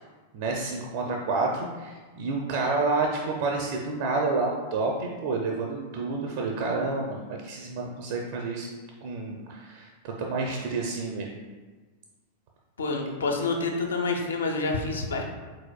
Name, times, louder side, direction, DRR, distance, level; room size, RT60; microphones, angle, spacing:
voice 1, 0.3-8.7 9.0-11.3, right 3 dB, 50° right, 0 dB, 0.4 m, -29 dB
voice 2, 12.8-15.2, left 3 dB, 70° left, 2 dB, 0.6 m, -28 dB
4.7 x 3.9 x 2.2 m, 1.3 s
figure-of-eight pair, 90°, 0 cm